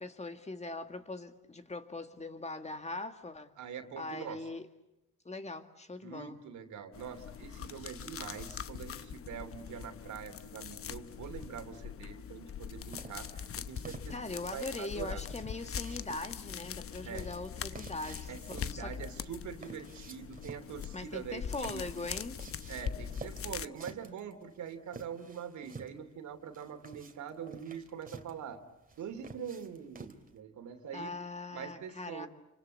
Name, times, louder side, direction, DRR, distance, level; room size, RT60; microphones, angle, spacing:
voice 1, 0.0-3.5 4.0-4.6 5.2-6.4 14.1-19.0 20.9-22.4 30.9-32.3, left 2 dB, 20° left, 7 dB, 2.0 m, -41 dB
voice 2, 3.6-4.4 6.0-15.2 17.0-17.3 18.3-21.8 22.7-28.6 29.0-31.2 31.5-32.3, right 7 dB, 70° right, 8 dB, 2.9 m, -44 dB
sound 1, 6.9-23.7, left 8 dB, 50° left, 0.9 m, -42 dB
sound 2, 12.9-30.4, right 4 dB, 30° right, 2.6 m, -51 dB
28.0 x 25.5 x 8.4 m, 0.89 s
cardioid pair, 90°, 30 cm